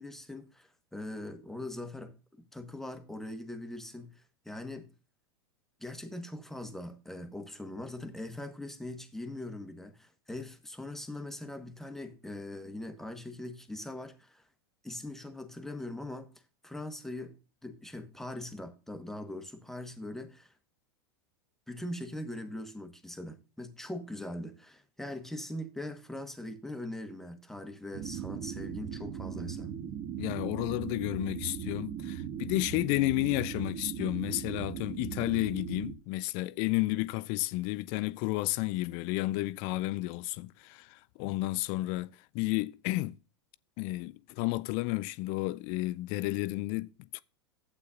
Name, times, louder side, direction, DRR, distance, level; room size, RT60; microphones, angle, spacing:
voice 1, 0.0-4.9 5.8-14.5 14.8-16.3 16.6-17.4 17.6-20.5 21.7-29.7, left 1 dB, 5° left, 1.2 m, -41 dB
sound 1, 27.9-35.9, right 9 dB, 45° right, 1.3 m, -39 dB
voice 2, 30.2-43.2 43.8-47.2, left 19 dB, 45° left, 0.4 m, -32 dB
12.0 x 8.2 x 2.5 m
hypercardioid pair, 95°, 14 cm